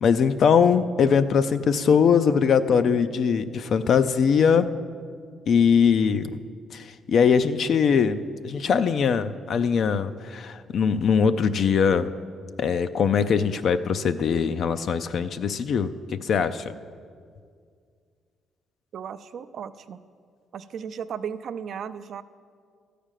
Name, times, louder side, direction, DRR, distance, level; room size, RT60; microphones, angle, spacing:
voice 1, 0.0-4.7 5.5-6.4 6.7-12.1 12.6-16.6, left 6 dB, 60° left, 10 dB, 0.5 m, -21 dB
voice 2, 18.9-20.0 20.5-22.2, right 7 dB, 65° right, 12 dB, 0.5 m, -35 dB
13.0 x 5.0 x 9.0 m, 2.1 s
cardioid pair, 90°, 0 cm